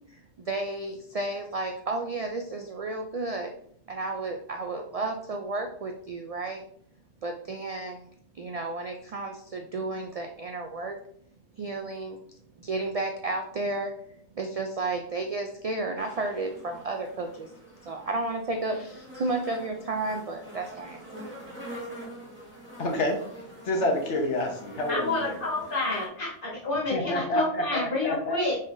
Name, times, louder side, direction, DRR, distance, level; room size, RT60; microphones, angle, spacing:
voice 1, 0.1-3.5 3.9-6.6 7.2-8.0 8.3-11.0 11.5-12.2 12.6-13.9 14.4-17.5 17.8-21.2, right 2 dB, 65° right, 3 dB, 0.3 m, -32 dB
sound 1, 16.0-26.1, right 1 dB, 10° right, 1.5 m, -45 dB
voice 2, 22.8-23.2 23.6-25.4 26.9-28.4, left 1 dB, 80° left, 2 dB, 1.2 m, -28 dB
voice 3, 24.9-28.6, left 2 dB, 50° left, -3 dB, 1.7 m, -29 dB
5.4 x 3.7 x 2.6 m, 0.63 s
omnidirectional pair, 1.2 m